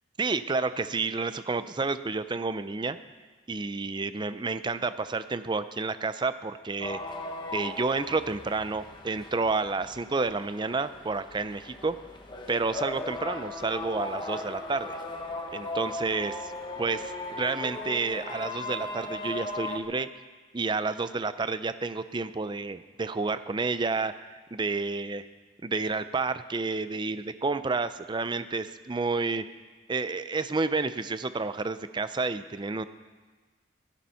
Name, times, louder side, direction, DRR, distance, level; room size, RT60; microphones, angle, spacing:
voice 1, 0.2-3.0 3.5-7.0 7.5-12.0 12.5-15.0 15.5-16.5 16.8-20.1 20.5-25.3 25.6-29.5 29.9-32.8, right 3 dB, 25° right, 12 dB, 0.5 m, -30 dB
sound 1, 6.8-19.8, left 2 dB, 25° left, 1.4 m, -38 dB
15.5 x 12.0 x 5.7 m, 1.3 s
head